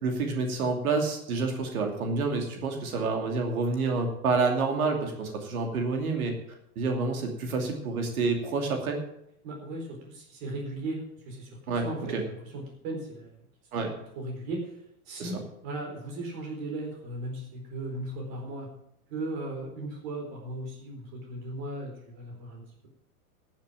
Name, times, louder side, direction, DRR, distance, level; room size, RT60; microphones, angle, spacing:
voice 1, 0.0-6.4 6.8-9.0 11.7-12.2 13.7-13.9 15.2-15.4, right 4 dB, 70° right, 3 dB, 2.7 m, -28 dB
voice 2, 9.4-13.3 14.2-14.7 15.1-15.4 15.6-18.7 19.1-22.9, right 2 dB, 45° right, 0 dB, 4.3 m, -37 dB
14.0 x 7.5 x 7.4 m, 0.78 s
hypercardioid pair, 105°, 45 cm